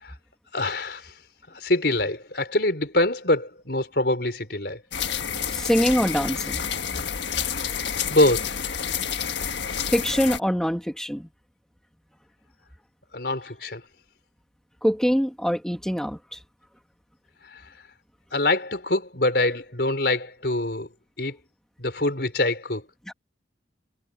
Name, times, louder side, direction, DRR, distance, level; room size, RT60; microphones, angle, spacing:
voice 1, 0.5-1.1 1.5-4.8 7.4-7.6 8.1-8.7 13.1-13.8 17.5-17.6 18.3-20.9 21.2-21.4 21.8-22.8, left 2 dB, 60° left, 4.8 m, -24 dB
sound 1, 4.9-10.4, left 8 dB, 80° left, 1.5 m, -29 dB
voice 2, 5.5-6.7 9.9-11.3 14.8-16.4 23.1-23.2, equal, 5° left, 2.2 m, -24 dB
head